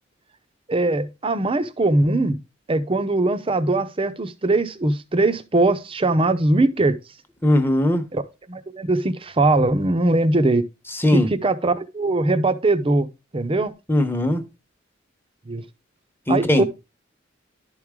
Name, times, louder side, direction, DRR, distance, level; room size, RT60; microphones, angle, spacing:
voice 1, 0.7-2.4 2.7-7.0 8.1-8.2 8.5-10.6 11.1-13.1 13.3-13.7 15.5-15.6 16.3-16.6, right 2 dB, 30° right, 0.6 m, -21 dB
voice 2, 7.4-8.0 10.9-11.3 13.9-14.4 16.3-16.6, left 1 dB, 10° left, 1.0 m, -19 dB
11.5 x 4.7 x 3.6 m
head